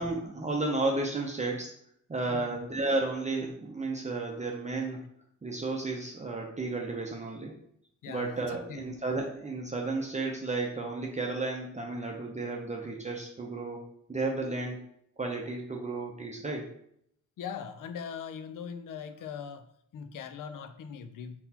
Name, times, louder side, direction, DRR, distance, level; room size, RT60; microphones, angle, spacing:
voice 1, 0.0-1.7 2.1-5.0 5.4-7.5 8.1-13.8 14.1-14.8 15.2-16.6, right 3 dB, 25° right, -1 dB, 0.6 m, -33 dB
voice 2, 8.0-9.0 17.4-21.4, left 7 dB, 85° left, 9 dB, 0.5 m, -41 dB
4.2 x 4.0 x 2.8 m, 0.71 s
cardioid pair, 100°, 31 cm